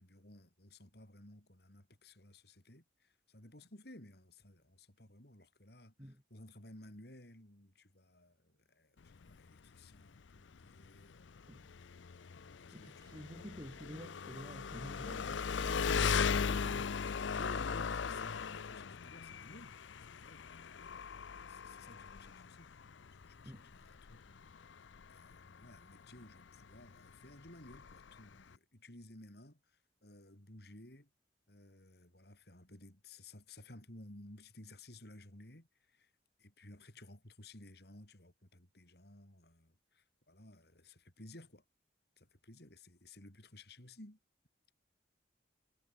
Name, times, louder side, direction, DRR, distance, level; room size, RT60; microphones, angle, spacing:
voice 1, 0.0-11.5 12.1-13.2 17.4-31.1 31.5-36.1 36.4-41.6 42.2-44.2, left 1 dB, 60° left, 4.5 m, -57 dB
Engine, 9.0-28.6, left 6 dB, 85° left, 0.6 m, -39 dB
voice 2, 12.7-16.9 23.4-23.6, equal, 20° right, 6.5 m, -50 dB
head